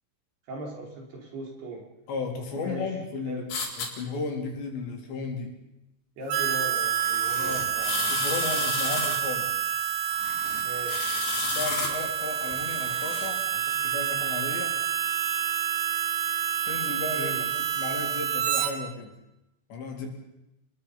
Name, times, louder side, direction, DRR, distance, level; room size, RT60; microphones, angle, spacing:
voice 1, 0.5-1.8 2.6-2.9 3.3-3.5 6.2-8.1 10.6-11.0 17.2-17.5, right 1 dB, 65° right, 0 dB, 6.7 m, -39 dB
voice 2, 2.1-3.4 3.8-5.6 7.4-7.7 8.0-9.5 11.5-14.8 16.6-17.4 17.7-19.1 19.7-20.1, left 4 dB, 85° left, 2 dB, 5.9 m, -34 dB
sound 1, 3.5-3.9 7.0-9.2 10.1-11.9 12.5-13.3, left 4 dB, 65° left, 5.9 m, -32 dB
Harmonica, 6.3-18.7, right 9 dB, 85° right, 4.0 m, -28 dB
29.5 x 21.5 x 5.6 m, 0.90 s
omnidirectional pair, 4.9 m